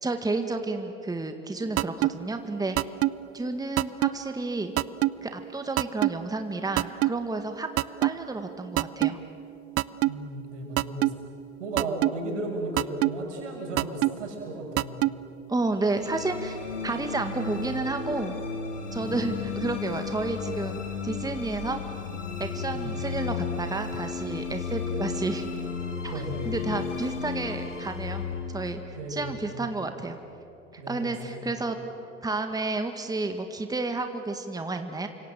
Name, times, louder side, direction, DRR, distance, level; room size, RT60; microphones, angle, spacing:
voice 1, 0.0-2.8 3.3-4.7 5.2-7.7 8.0-9.2 15.5-16.6 16.8-18.3 18.9-20.8 21.0-21.8 22.4-25.5 26.0-28.8 29.1-30.2 30.7-31.8 32.2-35.1, right 3 dB, 10° right, 6 dB, 1.9 m, -31 dB
sound 1, 1.8-2.1 2.8-3.1 3.8-4.1 4.8-5.1 5.8-6.1 6.8-7.1 7.8-8.1 8.8-9.1 9.8-10.1 10.8-11.1 11.8-12.1 12.8-13.1 13.8-14.1 14.8-15.1, right 18 dB, 40° right, 0.6 m, -22 dB
voice 2, 10.0-11.1 11.6-15.0 19.0-19.1 22.7-22.9 26.1-26.5 28.9-29.5 30.8-31.4, right 2 dB, 80° right, 2 dB, 6.3 m, -35 dB
sound 2, 15.7-30.1, left 5 dB, 90° left, 3.4 m, -34 dB
29.5 x 25.5 x 7.7 m, 2.7 s
hypercardioid pair, 75°, 36 cm